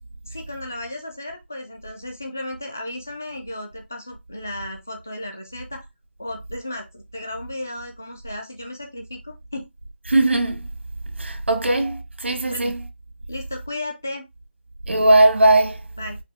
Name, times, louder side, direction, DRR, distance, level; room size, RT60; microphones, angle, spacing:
voice 1, 0.2-5.9 6.2-9.7 12.5-12.7 13.3-14.2 16.0-16.2, left 1 dB, 10° left, 0.3 m, -34 dB
voice 2, 10.1-10.7 11.2-12.8 14.9-15.8, right 2 dB, 90° right, 1.4 m, -18 dB
4.9 x 3.1 x 3.3 m
figure-of-eight pair, 180°, 6 cm